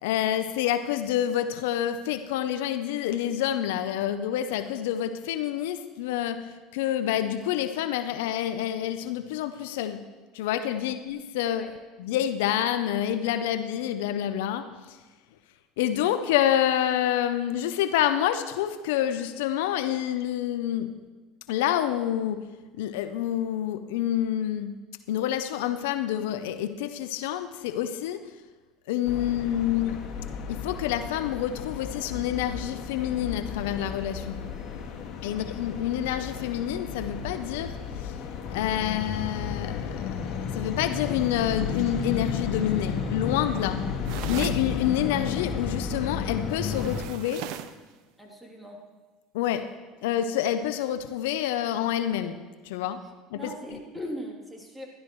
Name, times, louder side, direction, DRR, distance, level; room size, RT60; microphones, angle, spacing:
voice 1, 0.0-6.4 6.7-10.0 10.3-11.7 12.0-15.0 15.8-20.9 21.5-22.4 22.8-24.7 25.1-28.3 28.9-30.0 30.5-34.4 35.2-38.1 38.5-43.8 44.3-47.5 49.3-49.7 50.0-52.4 52.6-53.0 53.3-53.5, left 11 dB, 80° left, 11 dB, 0.6 m, -28 dB
sound 1, 29.1-47.0, left 6 dB, 60° left, 1.9 m, -33 dB
sound 2, 44.0-44.7 46.6-47.8, right 11 dB, 70° right, 0.6 m, -37 dB
voice 2, 48.2-48.8 53.3-54.9, equal, 10° right, -1 dB, 2.9 m, -39 dB
15.5 x 12.5 x 3.1 m, 1.3 s
supercardioid pair, 95°, 0 cm